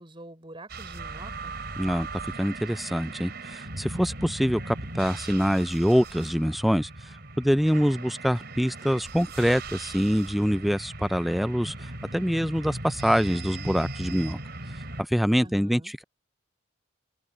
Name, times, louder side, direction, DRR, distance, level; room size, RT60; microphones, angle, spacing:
voice 1, 0.0-1.5 15.3-15.9, right 1 dB, 25° right, 4.4 m, -45 dB
sound 1, 0.7-15.0, right 3 dB, 50° right, 4.9 m, -39 dB
voice 2, 1.8-2.1 2.4-14.4 15.0-16.0, equal, ahead, 0.4 m, -25 dB
open air
head